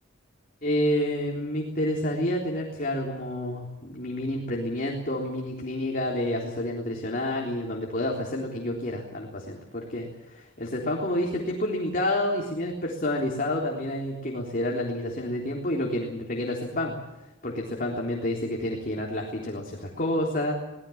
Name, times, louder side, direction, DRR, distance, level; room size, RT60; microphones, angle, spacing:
voice 1, 0.6-17.0 17.4-20.6, left 1 dB, 40° left, -1 dB, 3.7 m, -29 dB
24.0 x 18.5 x 7.3 m, 1.1 s
head